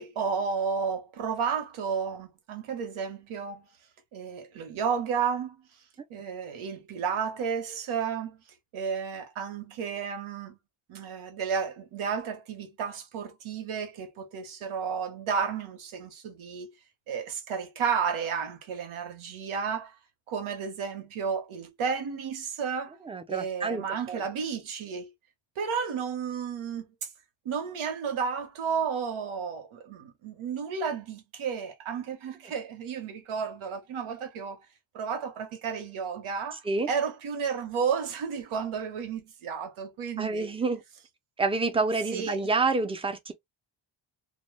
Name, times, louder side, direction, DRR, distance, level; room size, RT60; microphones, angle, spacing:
voice 1, 0.0-3.7 4.1-5.6 6.1-8.4 8.7-10.6 10.9-16.7 17.1-19.9 20.3-23.0 23.3-25.1 25.6-26.9 27.4-34.6 34.9-40.5 42.1-42.4, right 6 dB, 90° right, 0.9 m, -32 dB
voice 2, 23.0-24.2 36.6-36.9 40.2-40.8 41.4-43.3, right 3 dB, 15° right, 0.3 m, -28 dB
2.1 x 2.1 x 3.1 m
wide cardioid pair, 160°, 47 cm